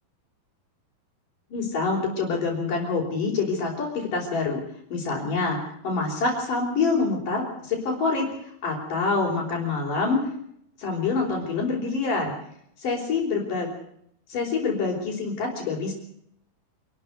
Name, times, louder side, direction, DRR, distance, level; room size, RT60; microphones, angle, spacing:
voice 1, 1.5-4.6 4.9-5.6 5.8-8.3 8.6-10.2 10.8-12.3 12.8-13.7 14.3-15.9, left 4 dB, 55° left, -4 dB, 5.6 m, -26 dB
27.0 x 13.0 x 8.3 m, 0.73 s
omnidirectional pair, 4.5 m